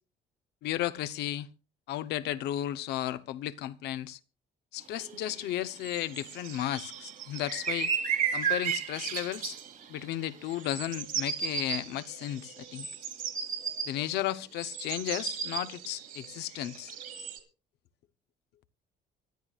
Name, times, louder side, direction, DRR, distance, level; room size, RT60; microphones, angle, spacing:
voice 1, 0.6-1.5 1.9-4.2 4.7-7.9 8.3-9.6 9.9-12.9 13.8-16.9, left 13 dB, 80° left, 0.8 m, -34 dB
sound 1, 4.9-17.4, right 7 dB, 55° right, 2.9 m, -35 dB
25.0 x 12.0 x 2.4 m
cardioid pair, 110°, 17 cm